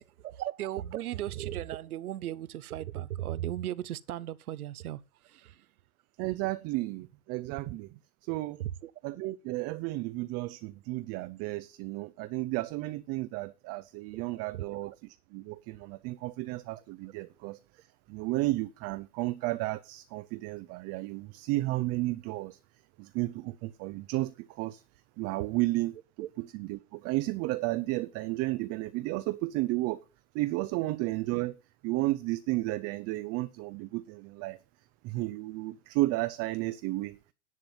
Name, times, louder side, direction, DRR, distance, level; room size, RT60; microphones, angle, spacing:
voice 1, 0.0-5.7 8.3-8.9 14.1-14.2 14.5-15.0 26.2-26.3 30.8-30.9, right 13 dB, 75° right, 0.9 m, -37 dB
voice 2, 6.2-7.9 8.2-8.6 9.0-14.9 15.3-22.6 23.0-24.8 25.2-26.0 26.6-30.0 30.3-31.6 31.8-34.6 35.0-37.2, right 19 dB, 35° right, 0.7 m, -33 dB
11.0 x 7.6 x 5.4 m
hypercardioid pair, 110°, 44 cm